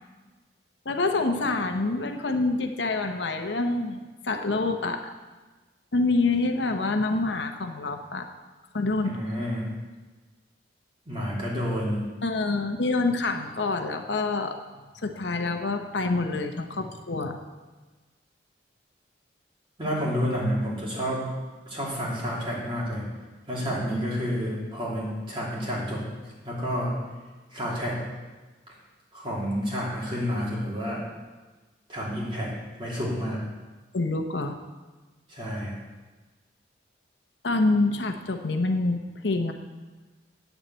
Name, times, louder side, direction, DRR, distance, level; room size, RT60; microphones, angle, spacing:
voice 1, 0.8-4.0 4.2-5.1 5.9-8.3 8.7-9.2 12.2-14.6 15.0-17.4 33.9-34.5 37.4-39.5, left 3 dB, 70° left, 5 dB, 0.9 m, -26 dB
voice 2, 9.0-9.7 11.1-12.1 19.8-21.3 21.7-23.0 23.5-26.0 26.4-27.0 27.5-28.0 29.1-31.0 31.9-32.5 32.8-33.4 35.3-35.8, equal, 30° right, -6 dB, 3.2 m, -29 dB
9.0 x 7.2 x 8.1 m, 1.3 s
head